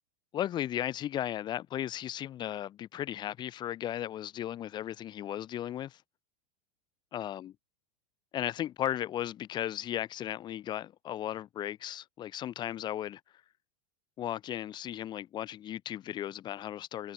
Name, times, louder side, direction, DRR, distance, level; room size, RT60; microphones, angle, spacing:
voice 1, 0.3-6.0 7.1-7.5 8.3-13.2 14.2-17.1, left 11 dB, 20° left, 2.5 m, -36 dB
supercardioid pair, 170°, 20 cm